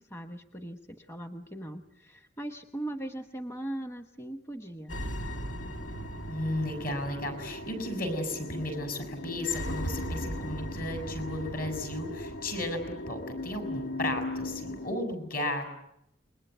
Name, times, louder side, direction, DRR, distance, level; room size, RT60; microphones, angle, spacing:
voice 1, 0.1-5.0, right 1 dB, 15° left, 7 dB, 1.1 m, -39 dB
sound 1, 4.9-14.9, equal, 80° left, 2.4 m, -37 dB
voice 2, 6.3-15.7, left 1 dB, 50° left, 8 dB, 6.5 m, -34 dB
28.5 x 22.0 x 9.3 m, 0.81 s
head